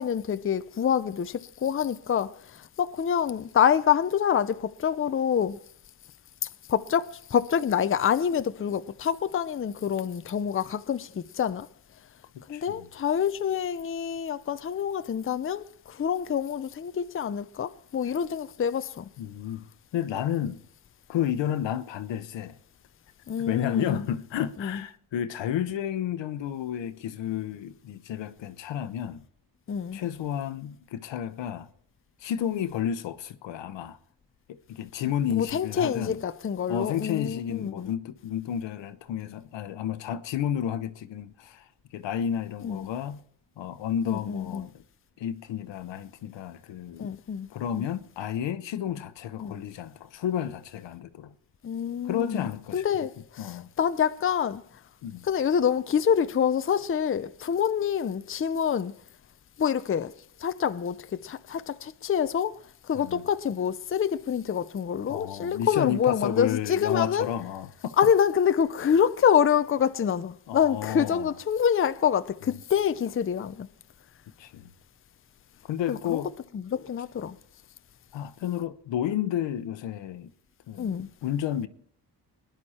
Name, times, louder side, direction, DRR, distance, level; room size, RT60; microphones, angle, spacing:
voice 1, 0.0-5.6 6.4-11.7 12.5-19.1 23.3-24.1 24.6-24.8 29.7-30.0 35.3-37.9 42.6-42.9 44.1-44.7 47.0-47.5 47.7-47.9 49.4-49.6 51.6-52.5 52.7-54.6 55.2-58.9 59.6-60.1 60.4-62.6 62.9-67.3 68.0-73.7 75.9-76.2 76.5-77.4 80.8-81.1, left 8 dB, 30° left, 0.6 m, -26 dB
voice 2, 12.5-12.9 19.2-19.6 19.9-20.6 21.1-22.6 23.4-29.2 29.9-31.7 32.2-34.0 34.5-36.2 36.7-43.2 43.6-44.7 45.2-47.0 47.5-51.3 52.0-52.9 53.4-53.7 55.0-55.2 62.9-63.2 65.1-67.9 70.5-71.3 74.4-74.7 75.7-76.3 78.1-80.3 80.7-81.7, left 10 dB, 85° left, 1.0 m, -31 dB
22.0 x 10.5 x 4.3 m
cardioid pair, 85°, 43 cm